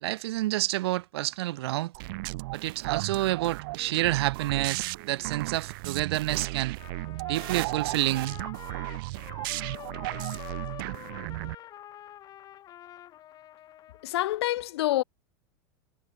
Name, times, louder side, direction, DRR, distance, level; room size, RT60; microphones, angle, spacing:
voice 1, 0.0-1.9 2.5-6.8 7.3-8.4, right 17 dB, 80° right, 0.6 m, -29 dB
sound 1, 1.9-11.6, right 23 dB, 60° right, 1.2 m, -35 dB
Trumpet, 6.8-14.1, left 12 dB, 30° left, 7.1 m, -46 dB
voice 2, 14.0-15.0, left 15 dB, 85° left, 1.5 m, -27 dB
supercardioid pair, 160°, 13 cm